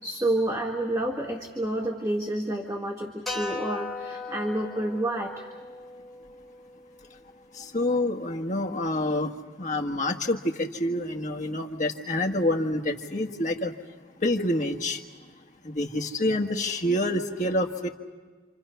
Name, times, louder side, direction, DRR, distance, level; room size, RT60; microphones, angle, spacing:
voice 1, 0.0-5.5, right 1 dB, 15° right, 0 dB, 1.8 m, -29 dB
sound 1, 3.3-7.6, left 3 dB, ahead, 3.5 m, -38 dB
voice 2, 7.5-9.3 9.6-13.7 14.2-15.0 15.6-17.9, left 1 dB, 40° left, 3 dB, 1.6 m, -27 dB
28.5 x 26.5 x 5.7 m, 1.4 s
head